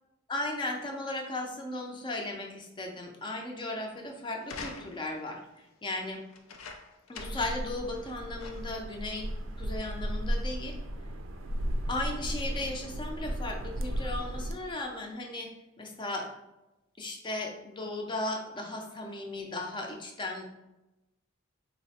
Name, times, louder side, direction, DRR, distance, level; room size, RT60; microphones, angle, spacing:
voice 1, 0.3-6.2 7.1-9.3 9.6-10.8 11.9-15.5 15.8-16.3 17.0-20.4, left 2 dB, 25° left, 2 dB, 0.5 m, -36 dB
sound 1, 4.4-5.2 6.3-7.6 7.9-8.0 8.4-8.8 9.6-9.7, left 4 dB, 85° left, 0.4 m, -44 dB
sound 2, 7.2-14.5, equal, 70° right, 0.4 m, -35 dB
3.9 x 2.0 x 4.1 m, 0.96 s
head